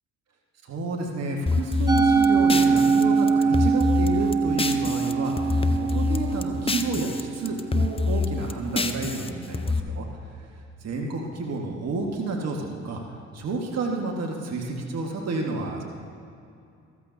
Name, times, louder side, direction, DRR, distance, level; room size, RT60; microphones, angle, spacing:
voice 1, 0.7-10.0 10.8-13.0 13.3-15.8, right 3 dB, 50° right, 0 dB, 1.7 m, -30 dB
sound 1, 1.5-5.1 5.4-7.2 7.5-9.8, left 3 dB, 15° left, 0.7 m, -26 dB
Musical instrument, 1.9-8.3, right 5 dB, 10° right, 1.0 m, -23 dB
14.5 x 14.5 x 2.8 m, 2.5 s
hypercardioid pair, 50°, 34 cm